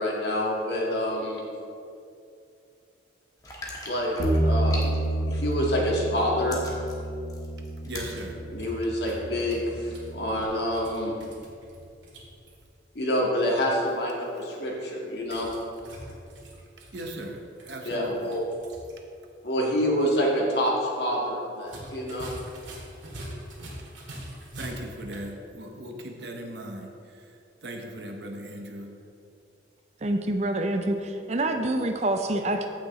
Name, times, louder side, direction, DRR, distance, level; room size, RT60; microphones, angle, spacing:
voice 1, 0.0-1.4 3.9-6.6 8.5-11.1 12.9-15.5 17.9-18.4 19.4-22.3, equal, 60° left, -3 dB, 1.9 m, -27 dB
sound 1, 3.4-5.8 6.2-8.2 8.7-8.8, left 2 dB, 20° left, 1.3 m, -40 dB
Bass guitar, 4.2-10.4, right 1 dB, 85° left, 1.3 m, -29 dB
voice 2, 7.8-8.4 16.9-18.4 24.6-28.9, right 1 dB, 65° right, 2 dB, 1.0 m, -38 dB
sound 2, 8.1-12.6 15.2-19.0 19.3-19.4 21.6-25.3, right 1 dB, 80° right, 1.9 m, -44 dB
voice 3, 30.0-32.7, right 1 dB, 35° right, 6 dB, 0.5 m, -26 dB
15.0 x 6.2 x 3.1 m, 2.5 s
head